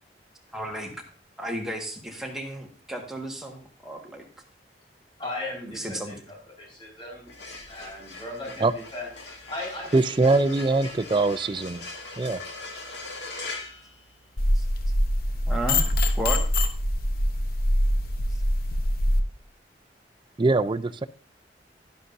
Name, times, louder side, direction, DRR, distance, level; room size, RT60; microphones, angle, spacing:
voice 1, 0.5-0.9 1.4-4.2 5.7-6.2 14.5-14.6 15.5-15.8 16.2-16.4, right 1 dB, 5° right, 0 dB, 1.6 m, -33 dB
voice 2, 5.2-7.3 7.7-9.1 9.5-9.9 10.2-11.2, left 2 dB, 30° left, -3 dB, 4.9 m, -38 dB
sound 1, 7.2-14.6, left 3 dB, 90° left, 2.0 m, -41 dB
voice 3, 9.9-11.9 12.2-12.4 20.4-21.1, right 3 dB, 30° right, 14 dB, 0.4 m, -22 dB
sound 2, 14.4-19.2, left 1 dB, 60° left, 0.8 m, -24 dB
11.5 x 11.0 x 2.7 m, 0.40 s
head